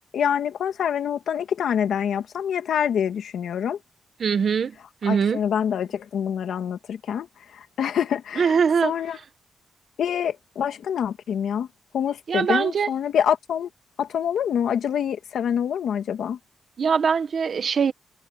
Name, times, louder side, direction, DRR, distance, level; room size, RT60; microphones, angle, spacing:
voice 1, 0.1-3.8 5.1-7.3 7.5-8.6 8.8-9.2 10.0-11.7 11.9-13.7 14.0-16.4, left 8 dB, 85° left, 2.1 m, -26 dB
voice 2, 4.2-4.8 5.0-5.4 8.4-8.9 12.3-12.9 16.8-17.9, right 6 dB, 55° right, 1.5 m, -22 dB
wide cardioid pair, 135°, 0 cm